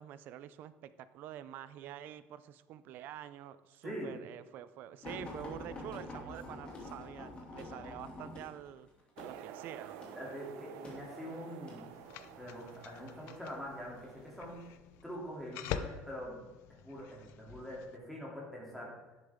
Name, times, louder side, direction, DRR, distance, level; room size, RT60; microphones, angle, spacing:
voice 1, 0.0-8.9 9.2-10.0, right 11 dB, 45° right, 14 dB, 0.5 m, -47 dB
voice 2, 3.8-4.1 10.1-11.9 12.4-14.6 15.0-16.4 16.7-18.9, equal, ahead, -4 dB, 2.8 m, -44 dB
sound 1, 5.0-11.8 12.6-13.0 14.0-14.6 15.4-15.5 15.9-16.0, left 1 dB, 25° left, 2.5 m, -47 dB
sound 2, 9.2-14.7, right 10 dB, 75° right, 0.8 m, -51 dB
sound 3, 11.9-18.0, left 9 dB, 65° left, 0.6 m, -46 dB
11.0 x 10.5 x 3.7 m, 1.1 s
cardioid pair, 175°, 4 cm